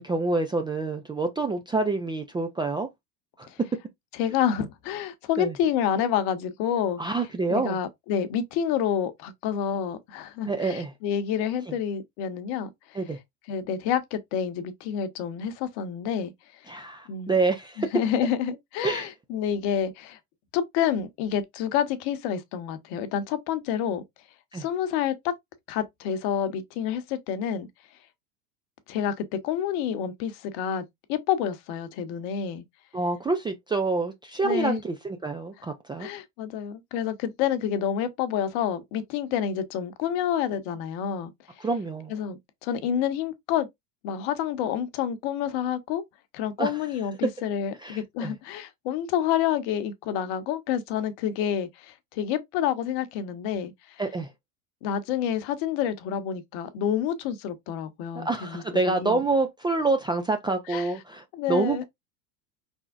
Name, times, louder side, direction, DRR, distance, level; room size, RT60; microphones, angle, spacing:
voice 1, 0.0-2.9 3.4-3.5 5.4-5.5 7.0-7.8 10.5-10.9 12.9-13.2 16.7-17.9 18.8-19.1 24.5-24.6 32.9-36.1 41.6-42.1 46.6-46.7 47.8-48.3 54.0-54.3 58.2-61.8, right 3 dB, 10° right, 0.4 m, -27 dB
voice 2, 4.1-7.0 7.5-13.0 13.5-16.3 17.1-17.3 17.8-20.2 20.5-24.0 24.5-25.3 25.7-27.7 28.9-29.1 29.4-30.8 31.1-32.6 34.4-34.8 36.0-41.3 42.1-43.7 44.0-46.0 46.3-53.7 54.8-59.2 60.7-60.9 61.3-61.8, left 9 dB, 50° left, 1.0 m, -28 dB
4.8 x 3.5 x 2.4 m
hypercardioid pair, 90°, 49 cm